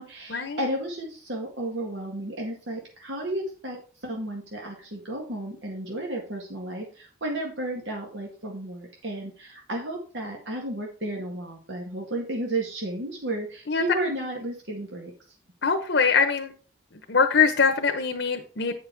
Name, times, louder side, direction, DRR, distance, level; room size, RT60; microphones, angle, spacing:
voice 1, 0.0-15.1, right 1 dB, 80° right, -1 dB, 1.9 m, -33 dB
voice 2, 15.6-16.5 17.1-18.7, left 5 dB, 75° left, 4 dB, 0.9 m, -22 dB
8.7 x 5.4 x 4.6 m, 0.38 s
head